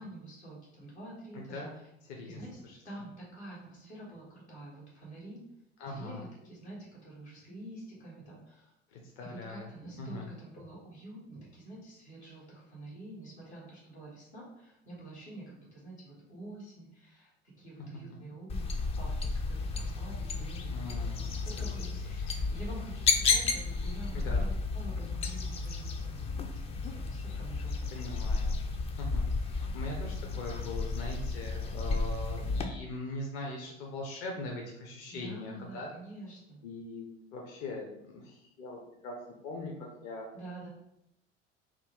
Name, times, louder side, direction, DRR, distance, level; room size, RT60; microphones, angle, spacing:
voice 1, 0.0-1.7 2.2-5.4 5.8-6.2 6.4-8.7 9.2-18.6 18.9-19.2 19.5-20.9 21.1-28.2 29.0-29.2 35.1-36.6 40.3-40.7, right 2 dB, 85° left, -6 dB, 1.4 m, -47 dB
voice 2, 1.3-1.7 2.1-2.4 2.6-2.8 5.8-6.2 8.9-9.7 10.0-10.3 18.1-18.2 20.7-21.3 21.6-21.8 22.1-22.3 24.1-24.5 27.9-28.6 29.0-35.9 36.6-37.1 37.3-39.2 39.4-40.3, left 2 dB, 50° left, 0 dB, 0.7 m, -41 dB
sound 1, 18.5-32.7, left 4 dB, 20° left, 0.3 m, -32 dB
3.0 x 2.3 x 3.5 m, 0.81 s
figure-of-eight pair, 65°, 33 cm